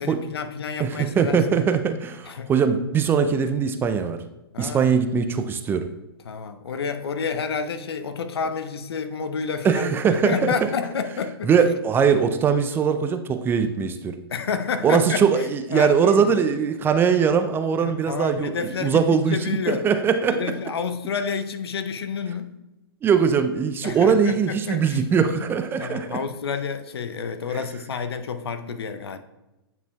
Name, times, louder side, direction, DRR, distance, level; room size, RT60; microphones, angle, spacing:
voice 1, 0.0-1.4 2.2-2.5 4.5-4.9 6.3-11.5 14.3-15.4 15.7-16.3 17.8-19.9 20.3-22.5 23.8-25.0 25.8-29.2, left 6 dB, 75° left, 0.6 m, -29 dB
voice 2, 0.8-4.2 4.6-5.9 9.6-10.7 11.4-14.1 14.8-20.5 23.0-26.2, right 6 dB, 15° right, 0.4 m, -21 dB
9.3 x 5.6 x 2.3 m
hypercardioid pair, 120°, 13 cm